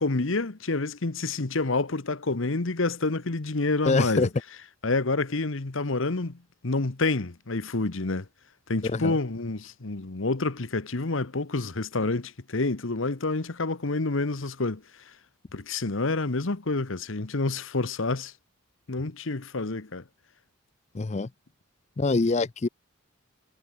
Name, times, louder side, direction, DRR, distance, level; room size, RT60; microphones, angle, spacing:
voice 1, 0.0-4.3 4.8-6.4 6.6-8.3 8.7-14.8 15.5-18.3 18.9-20.0, left 3 dB, 65° left, 1.1 m, -28 dB
voice 2, 3.8-4.3 8.8-9.2 20.9-21.3 22.0-22.7, left 3 dB, 30° left, 0.4 m, -25 dB
head